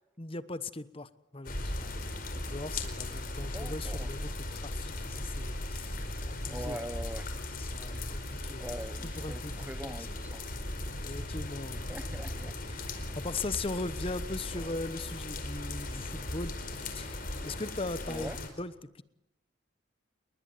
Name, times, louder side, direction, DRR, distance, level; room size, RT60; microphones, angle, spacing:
voice 1, 0.2-2.1 2.4-6.0 6.3-6.8 7.5-8.7 9.1-10.1 11.0-11.8 12.7-19.0, left 2 dB, 30° left, 1.1 m, -39 dB
sound 1, 1.4-18.5, left 1 dB, 45° left, 4.6 m, -38 dB
voice 2, 3.4-4.1 6.5-7.3 8.6-10.4 11.7-12.6 14.5-14.7 18.1-18.4, right 1 dB, 10° right, 0.9 m, -42 dB
29.0 x 22.0 x 9.3 m
head